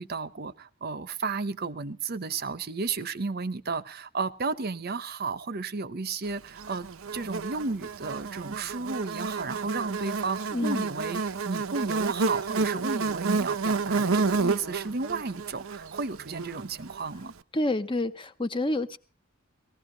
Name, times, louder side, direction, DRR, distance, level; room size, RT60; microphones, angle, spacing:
voice 1, 0.0-17.3, right 4 dB, 45° right, 0.8 m, -33 dB
Buzz, 6.6-17.0, right 4 dB, 85° right, 0.7 m, -30 dB
voice 2, 10.5-10.8 17.5-19.0, left 1 dB, 25° left, 0.7 m, -28 dB
18.5 x 15.0 x 3.9 m
head